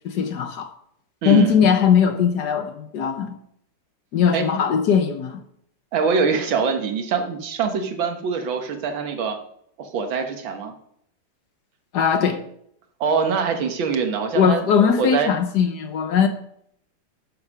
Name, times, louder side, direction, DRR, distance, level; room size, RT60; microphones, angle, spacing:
voice 1, 0.0-0.7 1.3-3.4 4.1-5.4 11.9-12.4 14.3-16.3, left 7 dB, 60° left, 1.3 m, -19 dB
voice 2, 1.2-1.6 4.3-4.5 5.9-9.4 9.8-10.7 13.0-14.6 15.0-15.3, right 5 dB, 75° right, 2.0 m, -23 dB
9.8 x 7.1 x 6.0 m
omnidirectional pair, 2.2 m